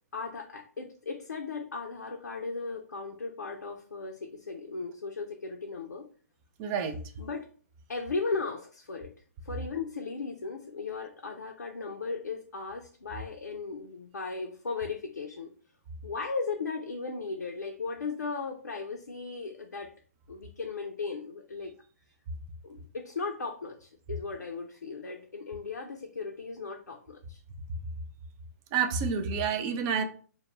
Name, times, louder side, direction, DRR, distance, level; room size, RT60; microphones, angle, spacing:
voice 1, 0.1-6.1 7.2-7.4 7.9-9.1 9.4-15.5 16.0-19.9 20.3-21.7 22.6-27.4, left 4 dB, 80° left, 2 dB, 0.4 m, -36 dB
voice 2, 6.6-7.0 28.7-30.1, right 6 dB, 25° right, 7 dB, 0.3 m, -28 dB
2.1 x 2.1 x 3.0 m, 0.41 s
figure-of-eight pair, 130°, 9 cm